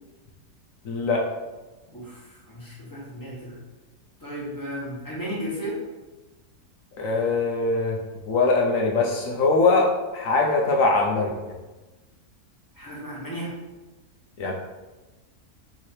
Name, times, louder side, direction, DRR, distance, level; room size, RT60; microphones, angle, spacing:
voice 1, 0.8-1.2 7.0-8.0 8.3-11.3 14.4-14.5, left 3 dB, 65° left, 0 dB, 0.9 m, -22 dB
voice 2, 1.9-3.6 4.2-5.8 12.7-13.5, equal, 15° left, -6 dB, 1.1 m, -34 dB
3.7 x 3.1 x 4.2 m, 1.2 s
omnidirectional pair, 1.6 m